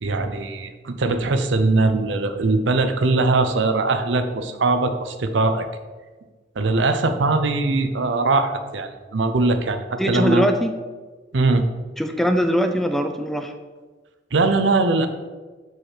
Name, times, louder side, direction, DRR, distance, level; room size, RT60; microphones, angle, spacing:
voice 1, 0.0-5.7 6.6-10.5 11.3-11.7 14.3-15.1, right 3 dB, 75° right, 8 dB, 0.6 m, -21 dB
voice 2, 10.0-10.7 12.0-13.5, equal, ahead, 6 dB, 0.3 m, -21 dB
6.5 x 4.8 x 4.3 m, 1.3 s
head